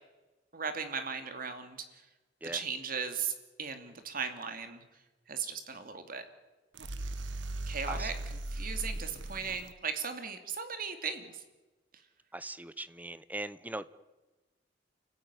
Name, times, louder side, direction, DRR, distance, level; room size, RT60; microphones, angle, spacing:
voice 1, 0.5-2.0 2.5-3.3 3.6-4.8 5.3-6.3 7.7-8.1 8.5-11.4, right 6 dB, 50° right, 8 dB, 2.7 m, -37 dB
sound 1, 6.7-9.7, right 1 dB, 75° right, 1.3 m, -38 dB
voice 2, 12.3-14.0, right 2 dB, 10° right, 16 dB, 0.8 m, -40 dB
30.0 x 15.0 x 9.9 m, 1.2 s
head